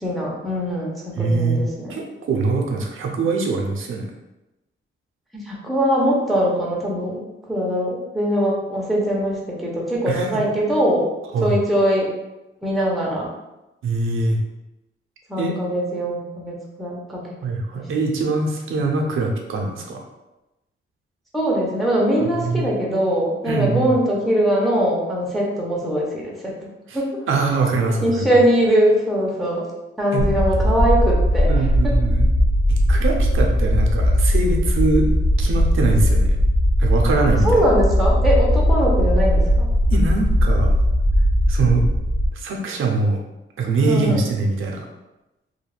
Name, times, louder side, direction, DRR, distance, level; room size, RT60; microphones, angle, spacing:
voice 1, 0.0-2.0 5.3-7.2 7.5-11.0 11.4-12.1 12.6-13.3 15.3-17.4 17.7-17.8 21.3-26.7 26.9-27.1 28.0-29.6 30.0-31.9 37.4-39.7 43.9-44.3, equal, ahead, -4 dB, 0.6 m, -21 dB
voice 2, 1.2-1.6 1.9-4.1 10.1-10.4 11.3-11.5 13.8-14.4 15.4-15.5 17.4-20.0 22.4-22.7 23.5-23.9 26.9-27.0 27.3-28.3 30.1-30.3 31.5-32.3 32.7-35.0 35.4-36.4 36.8-37.6 39.9-40.7 41.5-41.9 42.3-43.2 43.6-44.9, right 3 dB, 75° right, 1 dB, 0.5 m, -22 dB
sound 1, 30.2-42.3, equal, 65° left, 0.5 m, -18 dB
2.3 x 2.2 x 3.1 m, 0.97 s
wide cardioid pair, 125°, 21 cm